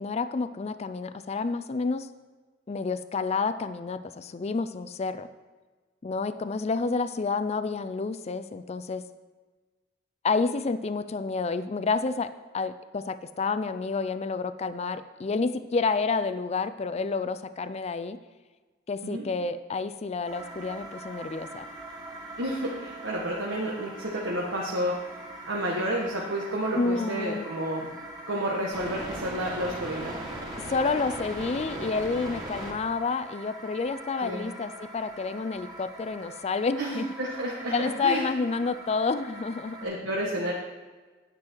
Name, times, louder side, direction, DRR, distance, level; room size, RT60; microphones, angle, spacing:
voice 1, 0.0-2.1 2.7-5.3 6.0-9.1 10.2-18.2 18.9-21.7 26.7-27.5 30.7-37.1 37.7-39.8, left 4 dB, 35° left, 11 dB, 0.4 m, -29 dB
sound 1, 20.2-39.8, right 1 dB, 25° right, 2.4 m, -41 dB
voice 2, 22.4-24.9 25.5-27.9 28.3-30.1 34.2-34.5 36.8-38.3 39.8-40.5, right 1 dB, 80° right, -3 dB, 1.4 m, -30 dB
9.7 x 9.2 x 4.5 m, 1.3 s
head